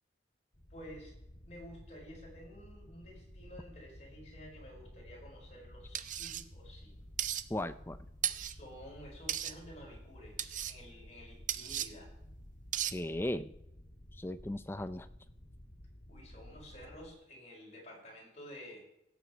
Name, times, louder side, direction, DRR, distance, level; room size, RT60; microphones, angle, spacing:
sound 1, 0.5-17.1, left 1 dB, 70° left, 2.5 m, -54 dB
voice 1, 0.7-1.2 1.4-7.0 8.4-12.1 16.1-18.8, equal, 40° left, -1 dB, 4.9 m, -52 dB
sound 2, 5.9-6.4 7.2-7.4 8.2-8.5 9.3-9.5 10.4-10.7 11.5-11.9 12.7-12.9, right 11 dB, 45° right, 0.5 m, -35 dB
voice 2, 7.5-8.0 12.9-13.5 14.2-15.1, left 1 dB, 15° left, 12 dB, 0.5 m, -37 dB
16.5 x 8.3 x 4.5 m, 0.82 s
head